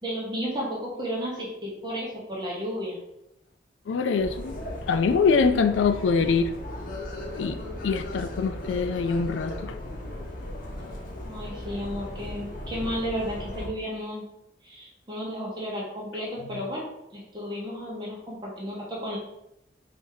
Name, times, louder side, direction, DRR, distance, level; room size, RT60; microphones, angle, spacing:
voice 1, 0.0-3.0 11.2-14.2 14.6-16.8 17.1-19.2, equal, 25° right, -5 dB, 1.0 m, -33 dB
voice 2, 3.9-4.5 4.9-6.5 7.4-7.6 7.8-9.8, left 5 dB, 80° left, 9 dB, 0.3 m, -24 dB
sound 1, 4.2-13.7, left 1 dB, 50° left, 0.8 m, -37 dB
3.4 x 2.7 x 4.6 m, 0.84 s
head